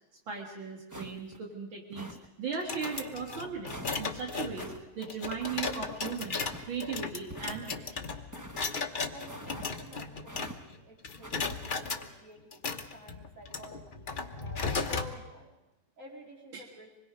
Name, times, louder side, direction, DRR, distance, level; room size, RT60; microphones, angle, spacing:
voice 1, 0.3-6.4 6.7-8.2 16.5-16.7, right 6 dB, 70° right, 0 dB, 2.7 m, -38 dB
sound 1, 0.9-1.4 1.9-2.3 2.8-3.0 3.7-4.0 4.6-4.8 5.4-5.7 6.4-6.7 7.3-7.8 8.3-8.6 9.3-9.7 10.3-10.6 11.2-11.6, right 1 dB, 15° right, 0.6 m, -44 dB
sound 2, 2.5-10.8 11.0-12.0 12.5-15.1, left 4 dB, 35° left, 0.9 m, -36 dB
voice 2, 9.1-10.3 10.6-15.5 16.0-16.9, left 1 dB, 40° right, -1 dB, 4.2 m, -51 dB
26.0 x 21.0 x 5.3 m, 1.0 s
omnidirectional pair, 2.3 m